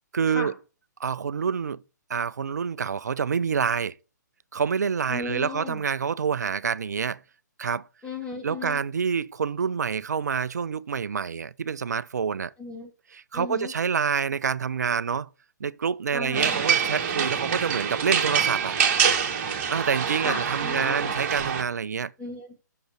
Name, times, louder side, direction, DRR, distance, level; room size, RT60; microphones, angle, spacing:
voice 1, 0.1-0.5 1.0-1.8 2.1-3.9 4.5-7.2 7.6-7.9 8.4-12.5 13.1-15.3 15.6-18.8 19.7-22.1, right 6 dB, 65° right, 0.5 m, -27 dB
voice 2, 5.1-5.8 8.0-8.8 12.6-12.9 13.3-13.7 16.1-16.5 20.2-21.1 22.2-22.6, left 3 dB, 10° left, 1.9 m, -35 dB
sound 1, 16.3-21.6, right 7 dB, 40° right, 1.8 m, -25 dB
7.9 x 6.5 x 4.1 m
figure-of-eight pair, 125°, 10 cm